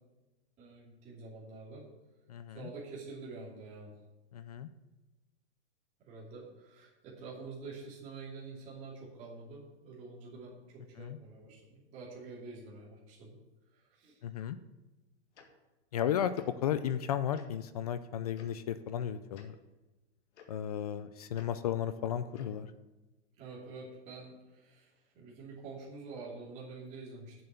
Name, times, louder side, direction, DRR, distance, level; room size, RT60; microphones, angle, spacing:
voice 1, 0.6-1.8 2.5-3.9 6.0-13.4 13.7-14.2 23.4-27.3, right 3 dB, 20° right, -7 dB, 2.8 m, -47 dB
voice 2, 4.3-4.7 11.0-11.2 14.2-14.6 15.9-16.3 16.6-19.5 20.5-22.7, left 10 dB, 35° left, 13 dB, 0.4 m, -34 dB
Tick-tock, 15.3-15.5 16.3-16.5 17.3-17.5 18.3-18.5 19.3-19.5 20.3-20.5 21.3-21.5 22.3-22.5, left 7 dB, 85° left, 2.0 m, -55 dB
7.7 x 7.7 x 8.2 m, 1.1 s
supercardioid pair, 170°, 34 cm